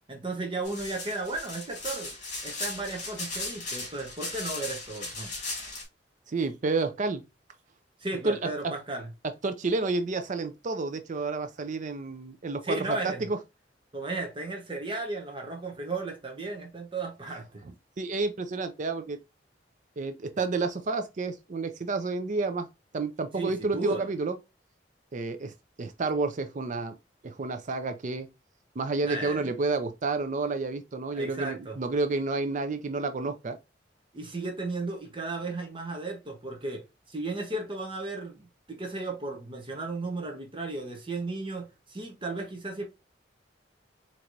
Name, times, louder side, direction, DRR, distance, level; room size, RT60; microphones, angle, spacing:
voice 1, 0.1-2.1 2.4-5.3 8.0-9.1 12.6-13.2 13.9-17.6 23.3-24.1 29.0-29.5 31.1-31.8 34.1-42.8, right 2 dB, 30° right, 0.9 m, -35 dB
sound 1, 0.6-5.8, left 2 dB, 45° left, 2.2 m, -37 dB
voice 2, 6.3-7.2 8.2-8.7 9.4-13.4 18.0-19.2 20.0-22.7 22.9-24.4 25.1-25.5 25.8-27.0 27.2-28.3 28.8-33.6, right 3 dB, 45° right, 0.5 m, -30 dB
4.4 x 3.0 x 2.5 m
head